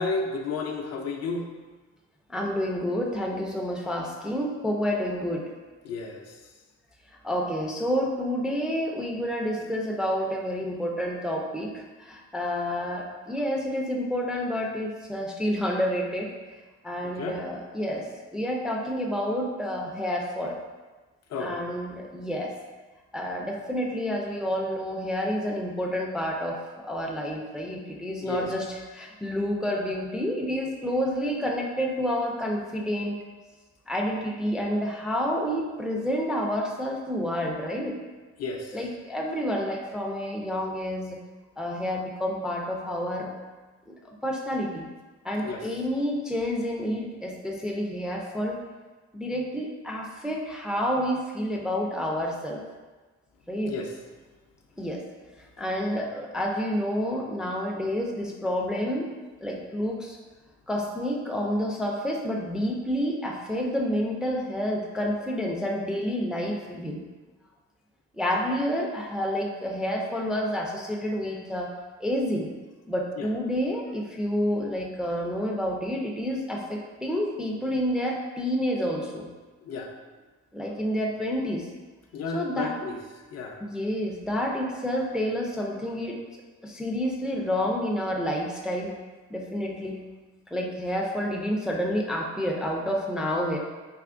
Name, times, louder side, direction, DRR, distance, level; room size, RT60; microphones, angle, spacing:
voice 1, 0.0-1.5 5.8-6.3 17.2-17.4 21.3-21.5 28.2-28.5 38.4-38.8 45.4-45.6 53.6-53.9 73.2-73.3 79.6-79.9 82.1-83.0 83.3-83.6, left 4 dB, 60° left, 2 dB, 0.5 m, -32 dB
voice 2, 2.3-5.4 7.2-16.3 16.8-18.1 18.3-20.6 21.4-22.5 23.1-33.2 33.9-38.0 38.7-41.2 41.6-43.3 43.9-44.0 44.2-44.9 45.2-48.6 49.1-52.6 53.5-53.7 54.8-55.0 55.6-59.1 59.4-60.2 60.7-67.0 68.2-71.7 72.0-72.5 72.9-79.3 80.5-81.7 82.3-82.7 83.6-86.2 86.6-88.9 89.3-90.0 90.5-93.6, equal, ahead, -1 dB, 0.3 m, -29 dB
3.5 x 2.8 x 2.4 m, 1.3 s
cardioid pair, 90°, 30 cm